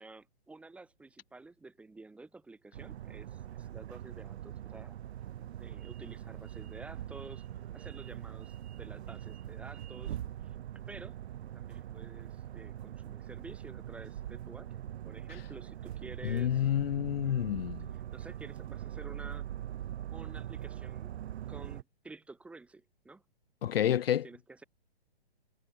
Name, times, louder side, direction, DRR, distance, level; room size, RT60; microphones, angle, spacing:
voice 1, 0.0-5.0 5.4-7.4 7.7-10.2 10.4-10.5 10.9-11.2 11.5-16.7 18.1-19.5 20.1-21.1 21.5-23.2 23.7-24.6, right 3 dB, 5° right, 1.4 m, -51 dB
sound 1, 2.7-21.8, right 11 dB, 85° right, 0.5 m, -42 dB
voice 2, 16.2-17.9 23.6-24.3, left 11 dB, 65° left, 0.7 m, -29 dB
hypercardioid pair, 150°, 32 cm